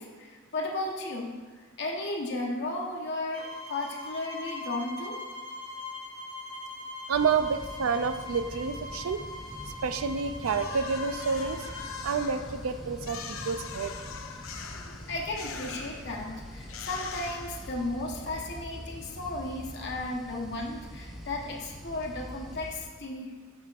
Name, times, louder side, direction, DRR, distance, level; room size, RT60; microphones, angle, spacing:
voice 1, 0.0-5.2 15.1-23.4, left 2 dB, 55° left, -1 dB, 1.0 m, -35 dB
sound 1, 3.3-11.9, left 2 dB, 50° right, 1.6 m, -41 dB
sound 2, 7.1-22.8, equal, ahead, 0.6 m, -44 dB
voice 2, 7.1-9.2 9.8-11.7 12.0-13.9, right 5 dB, 85° right, 10 dB, 0.4 m, -29 dB
sound 3, 10.4-18.1, left 6 dB, 80° left, 0.6 m, -42 dB
12.5 x 5.0 x 2.4 m, 1.4 s
head